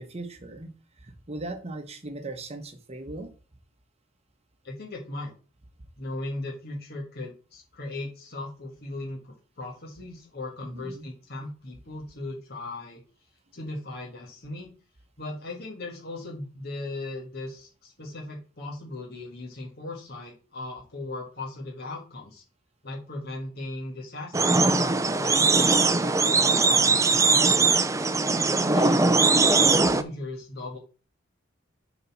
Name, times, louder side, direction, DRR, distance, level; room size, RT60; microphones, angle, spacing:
voice 1, 0.0-3.3 10.6-11.1, right 2 dB, 30° right, 7 dB, 1.0 m, -38 dB
voice 2, 4.6-5.3 6.0-13.0 13.5-14.7 15.2-22.4 22.8-27.9 28.5-30.8, left 2 dB, 50° left, -2 dB, 1.7 m, -38 dB
sound 1, 24.3-30.0, right 3 dB, 15° right, 0.5 m, -21 dB
7.4 x 4.1 x 5.9 m, 0.37 s
head